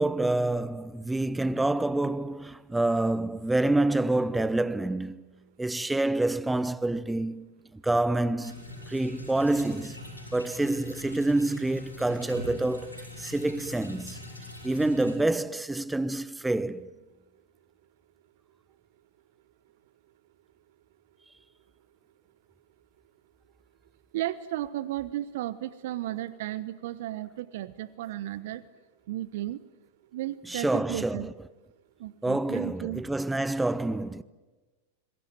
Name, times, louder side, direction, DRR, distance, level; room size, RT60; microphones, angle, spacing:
voice 1, 0.0-5.3 5.6-10.0 10.3-14.2 14.6-16.9 30.5-31.3 32.2-34.2, right 2 dB, 5° right, 0.9 m, -27 dB
sound 1, 8.4-15.2, left 2 dB, 90° left, 7.9 m, -42 dB
voice 2, 24.1-28.6 29.1-29.6 30.1-31.3 32.0-33.0, right 14 dB, 55° right, 1.0 m, -34 dB
26.0 x 23.0 x 9.0 m
figure-of-eight pair, 90°, 0 cm